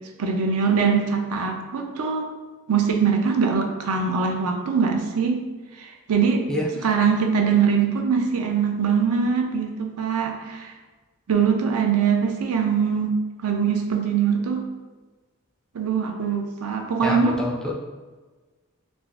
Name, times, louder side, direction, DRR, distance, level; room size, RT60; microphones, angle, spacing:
voice 1, 0.2-2.3 2.7-5.4 5.8-6.5 6.8-10.7 11.3-14.6 15.7-17.4, right 6 dB, 75° right, 3 dB, 0.5 m, -22 dB
voice 2, 17.0-17.7, left 1 dB, 5° left, -2 dB, 0.3 m, -26 dB
3.8 x 2.5 x 2.3 m, 1.3 s
head